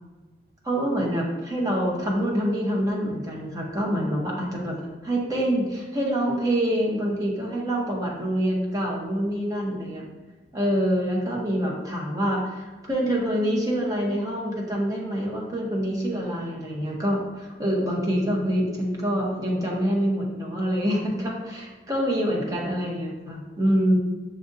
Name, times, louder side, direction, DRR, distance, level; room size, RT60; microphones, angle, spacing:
voice 1, 0.6-10.0 10.5-24.0, equal, 20° right, -2 dB, 0.7 m, -26 dB
6.3 x 2.5 x 2.5 m, 1.3 s
head